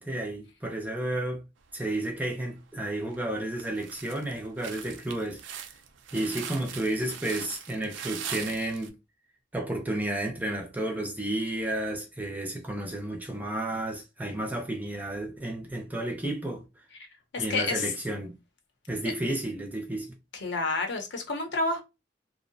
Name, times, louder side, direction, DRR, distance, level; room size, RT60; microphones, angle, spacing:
voice 1, 0.0-1.4 1.7-5.4 6.1-8.9 9.5-16.6 17.4-18.4 18.9-20.1, right 1 dB, 10° right, 0.4 m, -32 dB
sound 1, 2.0-2.6 3.1-3.2 3.6-8.9, right 8 dB, 80° right, 0.4 m, -41 dB
voice 2, 17.3-17.9 20.3-21.8, left 3 dB, 70° left, 0.7 m, -29 dB
2.6 x 2.0 x 2.6 m
head